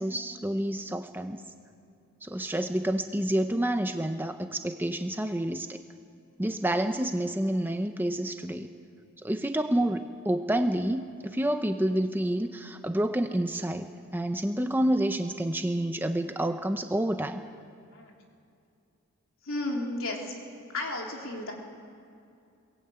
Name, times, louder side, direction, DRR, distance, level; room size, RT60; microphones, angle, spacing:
voice 1, 0.0-1.4 2.2-5.8 6.4-8.7 9.2-13.9 14.1-17.4, right 1 dB, 10° right, 7 dB, 0.7 m, -28 dB
voice 2, 19.4-20.3 20.7-21.5, left 2 dB, 65° left, 0 dB, 3.7 m, -33 dB
22.5 x 18.5 x 8.9 m, 2.5 s
head